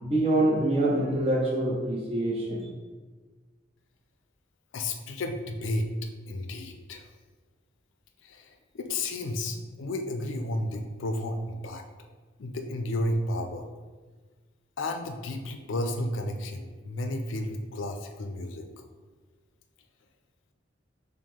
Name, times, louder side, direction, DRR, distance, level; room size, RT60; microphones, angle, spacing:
voice 1, 0.0-2.7, right 1 dB, 30° right, -4 dB, 0.6 m, -25 dB
voice 2, 4.7-5.9 6.3-7.0 8.2-11.8 12.4-13.6 14.8-18.7, left 1 dB, 80° left, 5 dB, 0.4 m, -32 dB
5.1 x 2.1 x 3.5 m, 1.4 s
head